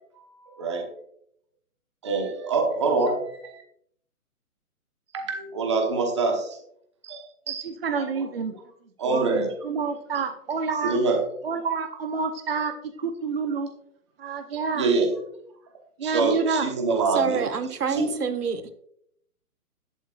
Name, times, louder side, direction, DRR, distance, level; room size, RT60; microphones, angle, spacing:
voice 1, 0.2-0.9 2.0-3.6 5.1-6.6 7.0-8.3 9.0-9.5 10.1-10.2 10.8-11.2 14.7-15.1 16.0-17.4 17.9-18.1, right 3 dB, 20° right, 2 dB, 1.1 m, -26 dB
voice 2, 7.6-8.5 9.0-11.0 11.4-13.7 14.2-14.9 16.0-16.7 17.3-17.5, right 5 dB, 40° right, 6 dB, 0.9 m, -28 dB
voice 3, 17.1-18.7, right 6 dB, 85° right, 7 dB, 1.7 m, -27 dB
12.5 x 11.0 x 2.4 m, 0.69 s
hypercardioid pair, 180°, 44 cm